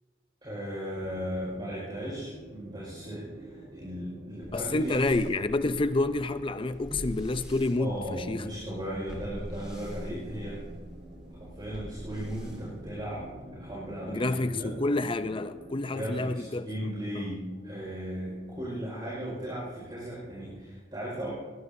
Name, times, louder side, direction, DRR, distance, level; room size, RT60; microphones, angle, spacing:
voice 1, 0.4-5.0 7.8-10.6 11.6-13.2 13.5-14.7 15.9-21.3, equal, 25° right, 5.0 m, -36 dB
sound 1, 0.9-20.7, right 1 dB, 50° right, 1.8 m, -50 dB
sound 2, 4.4-13.3, equal, 5° right, 3.8 m, -44 dB
voice 2, 4.5-8.5 14.1-16.7 17.1-17.2, left 2 dB, 30° left, 0.5 m, -29 dB
21.0 x 19.5 x 2.7 m
head